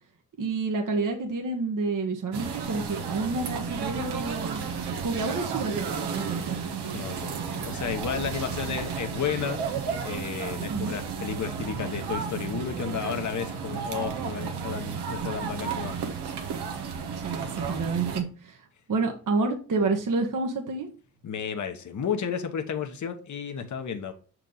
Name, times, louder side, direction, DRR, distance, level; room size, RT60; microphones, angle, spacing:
voice 1, 0.4-4.6 5.0-6.6 10.7-11.0 17.1-20.9, right 3 dB, 50° right, 1.4 m, -29 dB
sound 1, 2.3-18.2, right 6 dB, 75° right, 1.3 m, -33 dB
voice 2, 6.9-9.6 10.0-16.1 21.2-24.1, left 7 dB, 45° left, 1.2 m, -32 dB
6.6 x 4.7 x 3.9 m
supercardioid pair, 50°, 40 cm